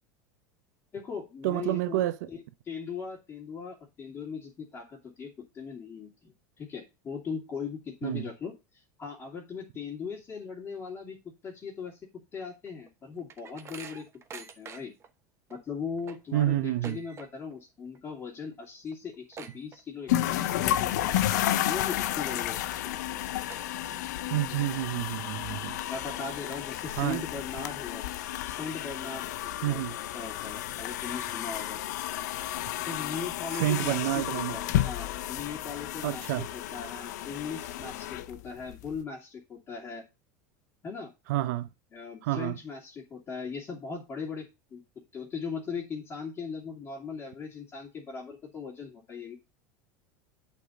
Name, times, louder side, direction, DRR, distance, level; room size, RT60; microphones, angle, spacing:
voice 1, 0.9-2.4 2.7-8.5 9.0-11.2 11.4-12.0 12.3-14.0 14.3-14.9 15.5-21.2 21.5-23.0 25.9-28.0 28.5-29.8 30.1-31.8 32.8-40.0 40.8-41.1 41.9-44.8 45.1-49.4, left 5 dB, 25° left, 2.7 m, -39 dB
voice 2, 1.4-2.3 8.0-8.3 16.3-17.0 24.3-25.8 27.0-27.2 29.6-30.0 33.5-34.6 36.0-36.5 41.3-41.7 42.2-42.6, right 15 dB, 75° right, 0.7 m, -29 dB
sound 1, 12.7-15.1 15.5-15.6 15.9-17.6 17.9-18.2 18.5-18.6 18.9-20.3 20.7-20.9 21.3-21.8 22.3-22.4 23.0-23.1 23.5-24.2 24.6-24.7 25.5-25.6 26.0-26.9, right 6 dB, 30° right, 1.0 m, -47 dB
sound 2, 20.1-39.0, left 13 dB, 80° left, 0.7 m, -32 dB
8.2 x 4.3 x 5.2 m
supercardioid pair, 115°, 9 cm